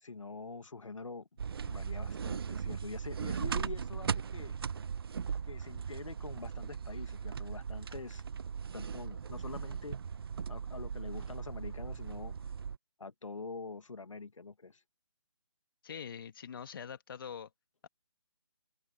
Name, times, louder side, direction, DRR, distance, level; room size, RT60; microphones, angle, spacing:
voice 1, 0.0-1.3 1.7-4.6 5.4-8.2 8.7-10.0 10.5-12.4 13.0-14.8, left 4 dB, 80° left, 1.8 m, -45 dB
sound 1, 1.4-12.8, right 6 dB, 50° right, 0.9 m, -38 dB
voice 2, 15.8-17.5, left 7 dB, 45° left, 2.7 m, -44 dB
open air
figure-of-eight pair, 155°, 16 cm